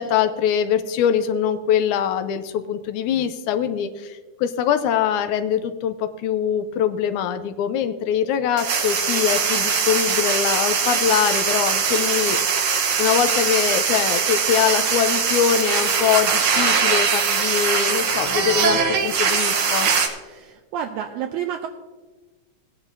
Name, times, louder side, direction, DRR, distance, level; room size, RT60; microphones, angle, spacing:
voice 1, 0.0-12.4 13.0-19.9, left 9 dB, 85° left, 9 dB, 2.0 m, -23 dB
sound 1, 8.6-20.1, right 6 dB, 60° right, 1.4 m, -21 dB
voice 2, 20.2-21.7, right 9 dB, 80° right, 4 dB, 1.9 m, -30 dB
18.5 x 9.8 x 2.7 m, 1.3 s
omnidirectional pair, 3.5 m